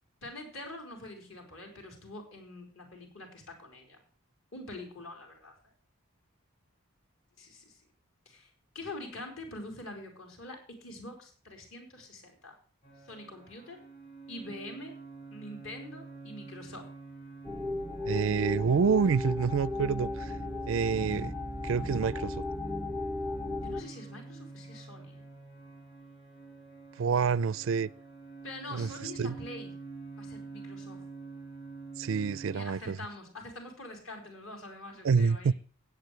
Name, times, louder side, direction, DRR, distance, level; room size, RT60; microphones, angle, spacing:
voice 1, 0.2-4.0 4.5-5.6 7.4-7.8 8.3-12.6 13.0-13.9 14.3-15.0 15.3-16.9 23.6-25.2 28.4-29.7 30.2-31.0 32.5-35.5, left 2 dB, 65° left, 4.5 m, -45 dB
sound 1, 12.8-32.6, right 4 dB, 45° left, 6.7 m, -47 dB
sound 2, 17.4-23.8, left 2 dB, ahead, 0.5 m, -35 dB
voice 2, 18.0-20.3 20.7-21.3 21.6-22.4 27.0-27.9 28.7-28.9 29.2-29.3 32.0-33.0 35.0-35.5, right 5 dB, 65° right, 0.4 m, -27 dB
17.5 x 8.5 x 3.2 m
head